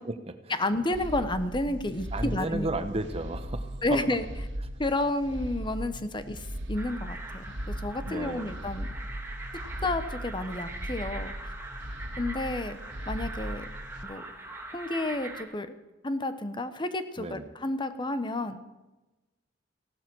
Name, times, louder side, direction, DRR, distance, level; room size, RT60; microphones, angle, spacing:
voice 1, 0.0-0.4 2.1-4.0 8.0-8.6 17.2-17.5, right 2 dB, 35° right, 9 dB, 1.1 m, -33 dB
voice 2, 0.6-2.7 3.8-4.3 4.8-8.9 9.8-11.5 12.2-12.8 13.1-13.6 14.0-14.2 14.7-15.8 16.0-18.6, left 2 dB, 25° left, 11 dB, 1.0 m, -31 dB
sound 1, 0.9-14.0, equal, 80° right, 1.9 m, -38 dB
sound 2, 6.7-15.4, right 2 dB, 15° right, 2.0 m, -42 dB
16.0 x 12.0 x 6.3 m, 1.1 s
head